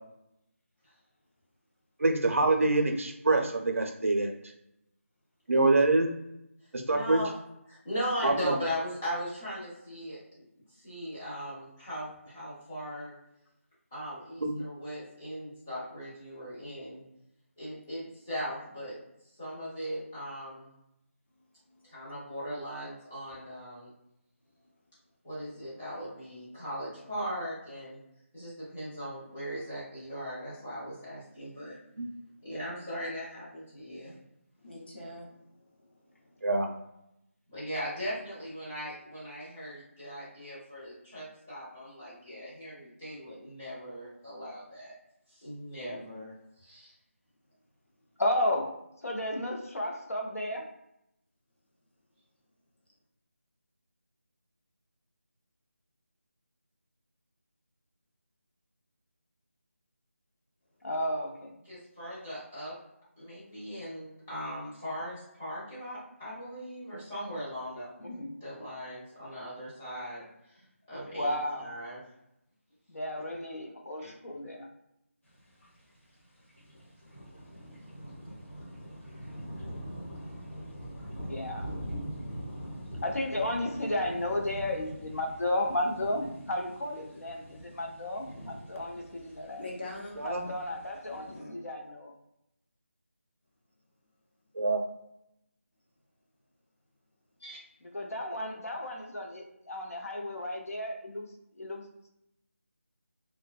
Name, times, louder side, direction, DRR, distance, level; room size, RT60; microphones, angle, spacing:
voice 1, 2.0-4.3 5.5-6.1 6.7-7.2 8.2-8.5 14.4-14.6 32.0-32.1 36.4-36.7 90.2-90.4 94.6-94.8, right 2 dB, 65° right, 3 dB, 0.5 m, -25 dB
voice 2, 6.8-7.3 7.7-10.2 10.7-13.1 13.9-17.0 17.6-19.0 19.4-20.7 21.8-23.9 25.2-28.0 28.3-31.8 32.4-34.2 37.5-44.9 45.3-46.9 61.6-62.7 63.2-67.9 68.4-70.2 70.5-72.0 74.0-74.1 97.4-97.6, equal, 10° left, -12 dB, 0.5 m, -39 dB
voice 3, 34.6-36.5 89.6-90.2 91.1-91.5, left 2 dB, 45° left, -3 dB, 0.8 m, -44 dB
voice 4, 48.2-50.7 60.8-61.6 68.0-68.4 71.1-71.8 72.9-74.7 81.1-81.7 83.0-89.6 90.2-92.1 97.8-101.3 101.5-101.8, left 1 dB, 85° left, 1 dB, 0.7 m, -33 dB
sound 1, 75.3-75.9 76.2-76.3 76.5-91.3, equal, 65° left, 1.1 m, -43 dB
2.5 x 2.1 x 2.3 m, 0.82 s
figure-of-eight pair, 175°, 8 cm